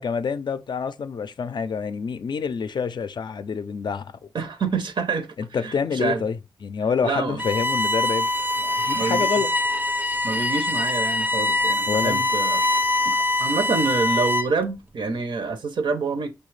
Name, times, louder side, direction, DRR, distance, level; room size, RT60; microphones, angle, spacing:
voice 1, 0.0-4.1 5.4-8.3 8.6-9.5 11.9-12.2, left 6 dB, 65° left, 0.4 m, -27 dB
voice 2, 4.3-6.2 7.0-7.4 8.9-9.3 10.2-12.6 13.0-16.3, right 4 dB, 80° right, 0.6 m, -27 dB
Bowed string instrument, 7.4-14.6, left 1 dB, 20° right, 0.4 m, -23 dB
5.5 x 2.3 x 3.1 m
wide cardioid pair, 90°, 8 cm